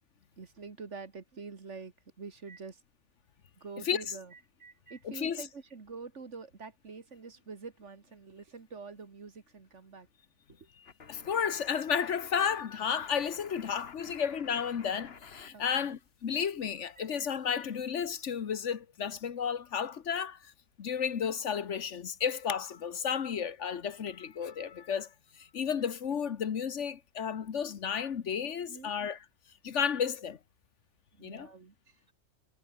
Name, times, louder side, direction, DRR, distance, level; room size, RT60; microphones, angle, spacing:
voice 1, 0.4-2.8 3.6-10.1 10.5-10.7 14.1-14.2 15.5-16.0 17.0-17.1 28.7-28.9 31.1-32.1, right 4 dB, 70° right, 2.4 m, -46 dB
voice 2, 5.0-5.4 11.1-20.5 20.8-29.2 29.6-30.4 31.2-31.5, left 7 dB, 75° left, 1.4 m, -32 dB
sound 1, 10.9-15.5 15.8-17.7, left 5 dB, 55° left, 1.7 m, -52 dB
omnidirectional pair, 1.3 m